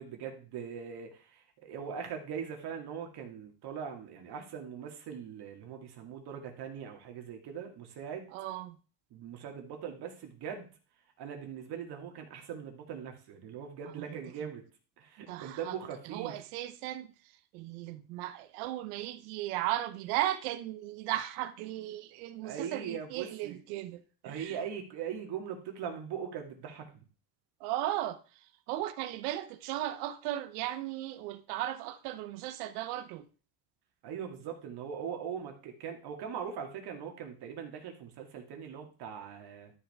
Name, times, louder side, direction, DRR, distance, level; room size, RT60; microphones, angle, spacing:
voice 1, 0.0-8.3 9.1-10.7 11.2-14.6 15.0-16.3 22.4-23.6 24.2-27.0 34.0-39.7, right 7 dB, 60° right, 2.4 m, -41 dB
voice 2, 8.3-8.8 13.9-14.5 15.3-15.8 16.0-24.6 27.6-33.3, right 14 dB, 85° right, 0.9 m, -36 dB
12.5 x 5.5 x 3.6 m
supercardioid pair, 100°, 44 cm